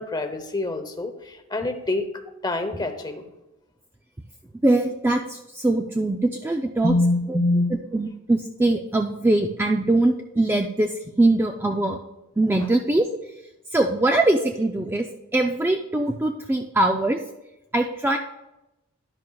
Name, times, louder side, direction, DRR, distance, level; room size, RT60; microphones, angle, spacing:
voice 1, 0.0-3.3 6.8-7.8, left 2 dB, 20° left, 7 dB, 0.8 m, -25 dB
voice 2, 4.6-6.9 7.3-7.4 7.9-12.0 12.4-13.1 13.7-15.1 15.3-17.2 17.7-18.2, right 2 dB, 10° right, 3 dB, 0.4 m, -22 dB
11.0 x 10.5 x 2.3 m, 0.93 s
head